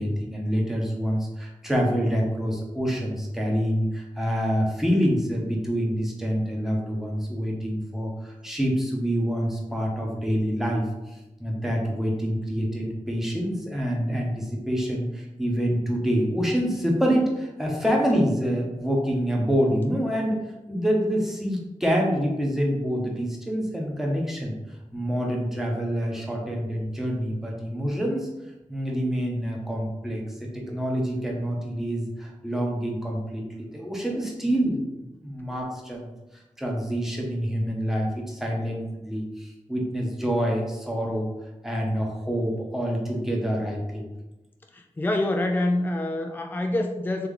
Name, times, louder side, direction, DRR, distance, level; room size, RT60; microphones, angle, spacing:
voice 1, 0.0-11.1 11.4-20.4 20.7-24.5 24.9-28.3 28.7-36.1 36.6-41.3 41.6-44.0, equal, 5° right, -1 dB, 1.1 m, -26 dB
voice 2, 44.7-47.3, left 1 dB, 15° left, 4 dB, 0.4 m, -26 dB
3.4 x 3.0 x 3.7 m, 0.99 s
cardioid pair, 50°, 13 cm